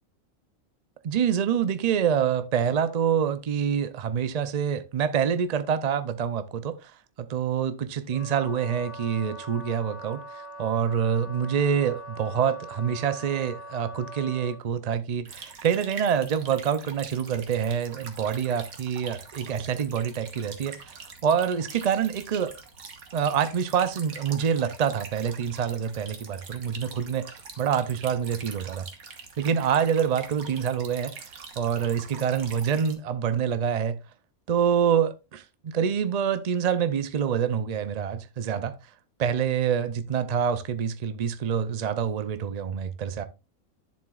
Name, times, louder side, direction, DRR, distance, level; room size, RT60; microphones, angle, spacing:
voice 1, 1.0-6.9 7.2-22.5 23.1-27.3 27.6-28.9 29.4-34.0 34.5-38.8 39.2-43.2, right 8 dB, 65° right, 0.4 m, -26 dB
Wind instrument woodwind instrument, 8.1-14.6, right 1 dB, 25° left, 3.3 m, -42 dB
sound 1, 15.2-32.9, right 5 dB, 85° right, 1.8 m, -44 dB
11.0 x 7.4 x 2.4 m
omnidirectional pair, 1.4 m